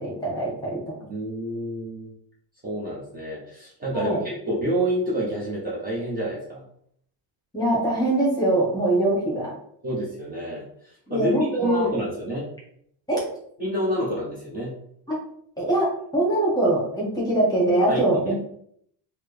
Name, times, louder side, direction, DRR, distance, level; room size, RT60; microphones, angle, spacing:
voice 1, 0.0-1.0 3.9-4.2 7.5-9.5 11.1-11.9 13.1-13.2 15.1-15.2 15.6-18.3, right 1 dB, 10° left, -4 dB, 1.0 m, -23 dB
voice 2, 1.1-2.1 2.6-6.6 9.8-12.5 13.6-14.7 17.9-18.3, right 1 dB, 20° right, -6 dB, 0.9 m, -28 dB
4.1 x 2.1 x 3.4 m, 0.69 s
cardioid pair, 170°, 39 cm